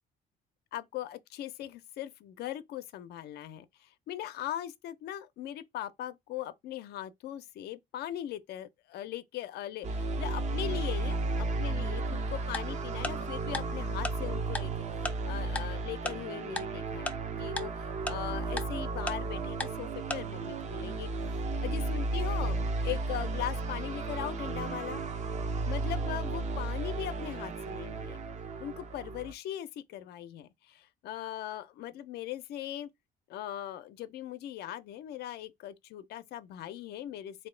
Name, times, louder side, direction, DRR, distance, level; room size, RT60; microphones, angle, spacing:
voice 1, 0.7-17.1 17.4-21.1 21.6-25.0 25.7-28.2 28.6-32.9 33.3-37.5, left 12 dB, 75° left, 0.6 m, -40 dB
sound 1, 9.8-29.3, right 3 dB, 45° right, 0.7 m, -34 dB
Tick-tock, 12.5-12.6 13.0-13.1 13.5-13.6 14.0-14.1 14.6-14.7 15.1-15.2 15.6-15.7 16.1-16.2 16.6-16.7 17.1-17.2 17.6-17.7 18.1-18.2 18.6-18.7 19.1-19.2 19.6-19.7 20.1-20.2, left 2 dB, 10° left, 0.5 m, -33 dB
3.6 x 2.7 x 3.2 m
cardioid pair, 110°, 17 cm